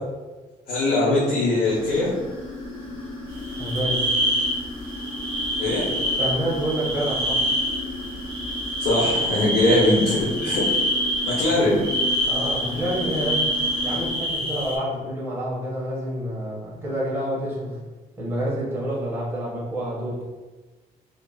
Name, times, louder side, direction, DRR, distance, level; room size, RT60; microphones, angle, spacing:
voice 1, 0.7-2.1 5.6-5.8 8.8-10.6 11.2-11.8, left 2 dB, 75° left, -6 dB, 0.7 m, -21 dB
sound 1, 1.6-14.1, left 2 dB, 35° left, 1.1 m, -36 dB
sound 2, 3.3-14.8, equal, 40° right, 1.0 m, -26 dB
voice 2, 3.5-4.0 6.2-7.4 11.3-11.7 12.3-13.5 13.8-17.8 18.2-20.2, equal, 15° right, -7 dB, 0.8 m, -28 dB
2.8 x 2.4 x 2.2 m, 1.3 s
cardioid pair, 170°, 15 cm